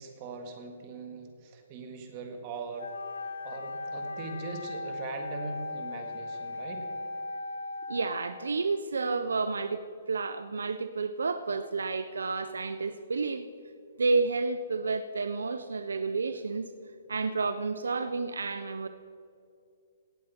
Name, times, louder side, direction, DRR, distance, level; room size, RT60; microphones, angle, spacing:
voice 1, 0.0-2.9 3.4-6.9, right 4 dB, 35° right, 5 dB, 1.8 m, -41 dB
Wind instrument woodwind instrument, 2.8-8.7, left 3 dB, 80° left, 0.7 m, -38 dB
voice 2, 7.9-13.4 14.0-16.7 17.1-18.9, right 4 dB, 85° right, 11 dB, 0.5 m, -30 dB
17.5 x 7.7 x 4.3 m, 2.4 s
hypercardioid pair, 140°, 0 cm